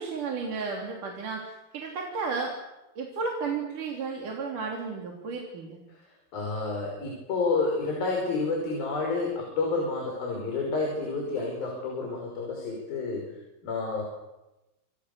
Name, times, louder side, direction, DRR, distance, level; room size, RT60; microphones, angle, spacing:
voice 1, 0.0-2.5 3.0-5.8, right 4 dB, 55° right, 0 dB, 4.7 m, -33 dB
voice 2, 6.3-13.3 13.6-14.1, left 3 dB, 65° left, 0 dB, 7.4 m, -29 dB
29.0 x 26.5 x 6.9 m, 0.99 s
omnidirectional pair, 4.4 m